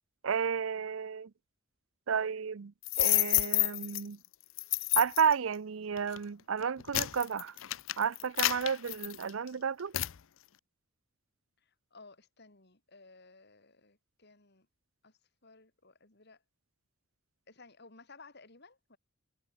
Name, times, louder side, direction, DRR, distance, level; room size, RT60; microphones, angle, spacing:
voice 1, 0.2-1.3 2.1-4.2 5.0-7.6 8.0-9.9, right 6 dB, 75° right, 0.6 m, -32 dB
sound 1, 2.8-4.0 4.6-5.3 6.0-6.2 6.6-9.5 9.9-10.2, left 18 dB, 70° left, 0.5 m, -29 dB
voice 2, 11.6-14.7 15.0-16.4 17.5-19.0, left 3 dB, 55° left, 4.1 m, -57 dB
head